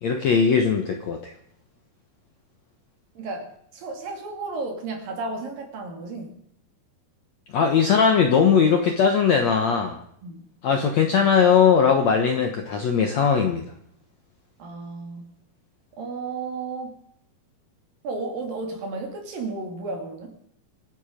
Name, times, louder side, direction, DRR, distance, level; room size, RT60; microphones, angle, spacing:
voice 1, 0.0-1.3 7.5-10.0 10.6-13.6, left 6 dB, 65° left, 4 dB, 1.8 m, -19 dB
voice 2, 3.2-6.4 10.2-10.5 14.6-15.4 16.0-17.0 18.0-20.3, right 3 dB, 60° right, 3 dB, 4.2 m, -33 dB
25.0 x 9.9 x 5.2 m, 0.70 s
omnidirectional pair, 4.7 m